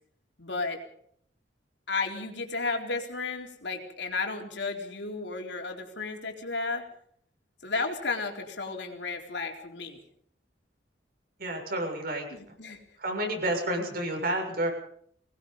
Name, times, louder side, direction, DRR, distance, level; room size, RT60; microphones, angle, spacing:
voice 1, 0.4-0.8 1.9-6.8 7.6-10.0 12.3-12.8, left 3 dB, 70° left, 3 dB, 4.0 m, -33 dB
voice 2, 11.4-12.3 13.0-14.7, right 1 dB, 55° right, 3 dB, 7.1 m, -30 dB
24.0 x 19.5 x 5.5 m, 0.63 s
head